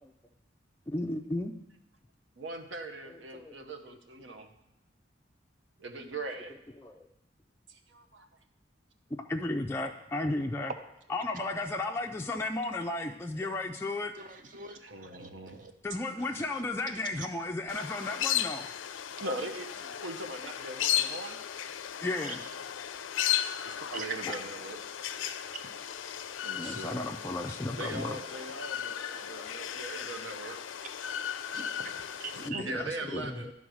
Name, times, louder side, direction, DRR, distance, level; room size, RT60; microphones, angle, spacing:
voice 1, 0.9-1.5 3.1-3.7 6.8-7.1 9.3-10.7 11.1-14.1 15.8-18.7 22.0-22.4 24.3-24.4 25.2-25.3 26.6-28.2 32.4-33.5, left 2 dB, 15° left, 1 dB, 0.3 m, -34 dB
voice 2, 2.4-4.5 5.8-6.6 7.7-8.3 14.8-15.6 19.2-19.7 20.0-21.7 22.8-22.9 23.6-24.8 25.3-25.4 26.0-27.0 27.8-30.6 32.5-33.5, right 2 dB, 80° right, 6 dB, 0.9 m, -41 dB
voice 3, 14.2-14.8 15.1-15.7 16.3-16.4 17.2-17.3 22.2-22.3 23.9-24.0 25.5-25.6 31.5-32.6, right 4 dB, 45° right, 6 dB, 0.7 m, -42 dB
sound 1, 17.7-32.5, left 10 dB, 85° left, 0.4 m, -35 dB
10.5 x 3.9 x 6.2 m, 0.87 s
head